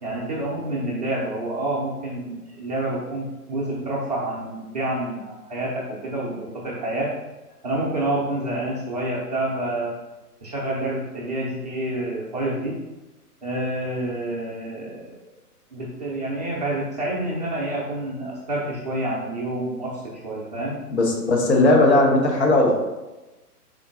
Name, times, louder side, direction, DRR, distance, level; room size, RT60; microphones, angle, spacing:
voice 1, 0.0-7.1 7.6-9.9 10.4-12.8 13.4-15.2 15.7-20.8, right 1 dB, 30° right, -5 dB, 0.5 m, -28 dB
voice 2, 20.9-22.7, left 2 dB, 45° left, 0 dB, 0.7 m, -17 dB
3.7 x 3.7 x 2.5 m, 1.1 s
figure-of-eight pair, 125°, 47 cm